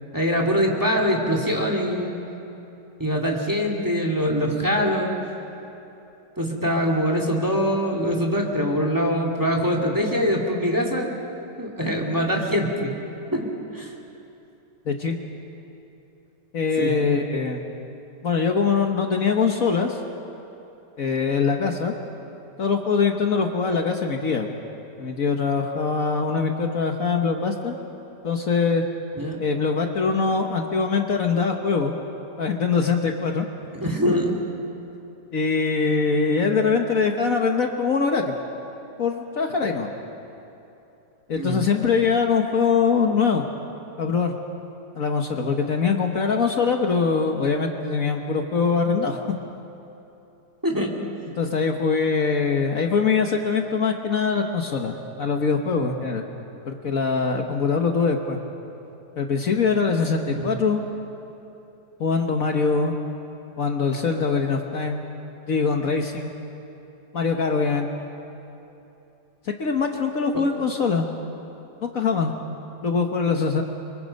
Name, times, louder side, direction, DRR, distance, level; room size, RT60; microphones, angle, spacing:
voice 1, 0.1-2.1 3.0-5.1 6.4-11.1 11.6-12.9 13.3-13.9 16.8-16.9 29.1-29.4 33.7-34.3 41.3-41.6 50.6-50.9 60.4-60.6, equal, 10° right, 1 dB, 2.5 m, -23 dB
voice 2, 14.9-15.2 16.5-17.6 18.2-20.0 21.0-21.9 22.6-24.5 25.0-27.8 28.2-28.8 29.4-31.9 32.4-33.5 35.3-38.3 39.0-39.9 41.3-43.5 44.0-44.3 44.9-49.2 51.4-56.2 56.6-58.4 59.2-60.8 62.0-62.9 63.6-65.1 65.5-66.3 67.1-67.9 69.5-71.1 71.8-72.3 72.8-73.6, left 5 dB, 55° left, 3 dB, 1.6 m, -23 dB
29.5 x 24.5 x 5.4 m, 2.9 s
omnidirectional pair, 1.8 m